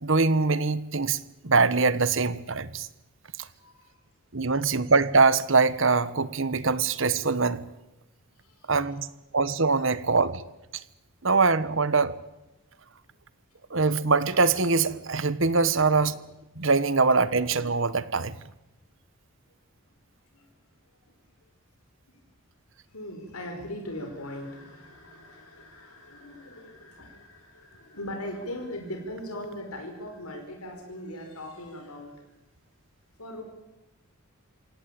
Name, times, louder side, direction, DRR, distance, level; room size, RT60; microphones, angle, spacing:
voice 1, 0.0-2.9 3.4-3.5 4.3-7.6 8.7-9.1 9.3-10.4 10.7-10.8 11.2-12.2 13.7-16.1 16.5-18.3, right 4 dB, 60° right, 16 dB, 1.2 m, -23 dB
voice 2, 3.6-3.9 8.4-8.8 15.9-16.2 20.3-20.5 22.1-22.2 22.9-32.2 33.2-33.4, left 1 dB, 80° left, 3 dB, 4.8 m, -40 dB
27.5 x 17.0 x 8.9 m, 0.97 s
head